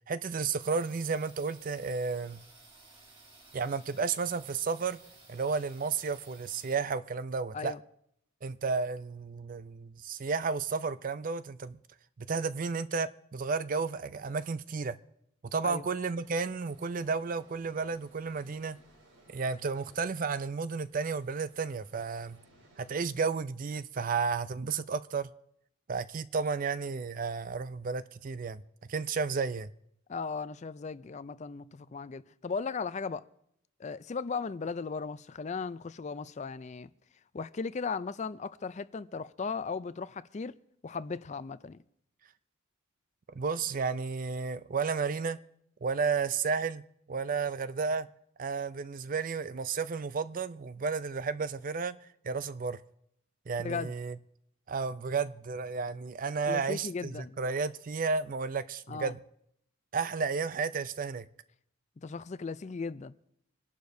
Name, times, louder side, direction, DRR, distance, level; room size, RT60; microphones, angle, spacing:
voice 1, 0.1-2.4 3.5-5.0 5.3-7.7 8.4-11.8 12.2-15.0 15.5-18.8 19.3-22.4 22.8-25.3 25.9-28.6 28.9-29.7 43.3-45.4 45.8-46.8 47.1-48.1 48.4-52.0 52.2-52.8 53.5-54.2 54.7-59.2 59.9-61.3, right 5 dB, 40° right, 0.4 m, -32 dB
sound 1, 0.6-6.8, right 3 dB, 25° right, 2.2 m, -56 dB
sound 2, 16.1-23.1, right 1 dB, 80° right, 5.0 m, -62 dB
voice 2, 30.1-33.3 33.8-36.9 37.3-40.5 40.8-41.8 53.6-53.9 56.5-57.4 58.9-59.1 62.0-63.1, left 5 dB, 35° left, 0.4 m, -37 dB
25.5 x 11.5 x 2.7 m
head